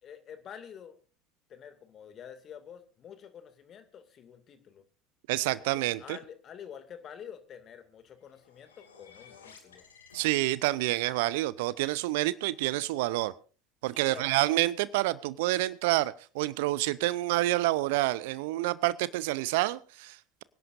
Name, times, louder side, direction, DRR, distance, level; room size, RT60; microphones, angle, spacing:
voice 1, 0.0-1.0 1.5-4.8 5.6-9.8 13.9-14.3, left 8 dB, 40° left, 10 dB, 2.3 m, -48 dB
voice 2, 5.3-6.2 10.1-13.3 13.8-20.4, right 17 dB, 65° right, 19 dB, 0.6 m, -28 dB
sound 1, 8.0-11.0, left 6 dB, 80° left, 2.4 m, -56 dB
25.0 x 11.0 x 2.6 m, 0.37 s
figure-of-eight pair, 70°, 0 cm